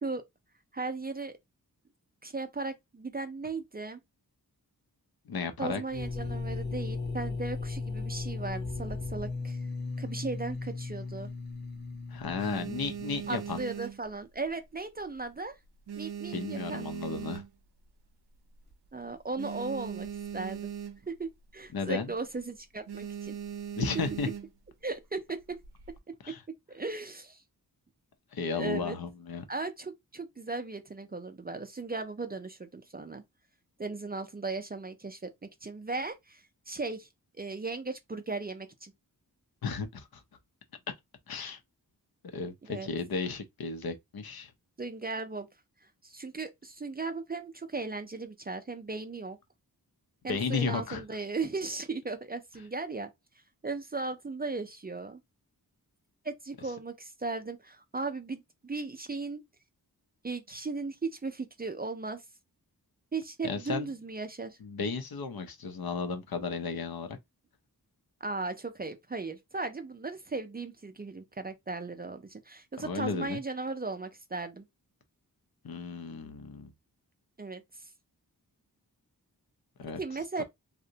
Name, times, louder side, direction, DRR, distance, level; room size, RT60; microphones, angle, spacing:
voice 1, 0.7-1.3 2.2-4.0 5.6-9.6 10.0-11.3 13.3-15.6 15.9-16.8 18.9-20.1 20.3-20.7 21.1-23.4 24.8-25.6 26.7-27.4 28.5-29.0 29.5-33.2 33.8-35.3 35.6-37.1 37.4-38.9 42.7-42.9 44.8-45.5 46.0-49.4 50.2-53.1 53.6-55.2 56.2-59.4 60.2-62.2 63.1-64.6 68.2-74.7 77.4-77.9 80.0-80.4, right 3 dB, 25° right, 0.4 m, -37 dB
voice 2, 5.3-5.8 12.1-13.6 16.3-17.4 21.7-22.1 23.8-24.3 26.2-26.4 28.3-29.5 39.6-40.2 40.9-41.0 41.3-41.6 42.3-44.5 50.3-51.0 63.4-63.9 64.6-67.2 72.8-73.4 75.6-76.7 79.8-80.0 80.4-80.5, left 5 dB, 70° left, 0.6 m, -34 dB
sound 1, 5.9-13.6, left 3 dB, 30° left, 0.6 m, -37 dB
sound 2, 11.1-11.8 12.2-14.7 15.0-15.3 15.6-17.9 18.3-18.4 18.6-18.7 19.1-21.3 21.6-21.8 22.2-22.4 22.9-24.7 25.4-26.0, right 8 dB, 85° right, 0.5 m, -40 dB
2.5 x 2.1 x 2.7 m
wide cardioid pair, 65°, 38 cm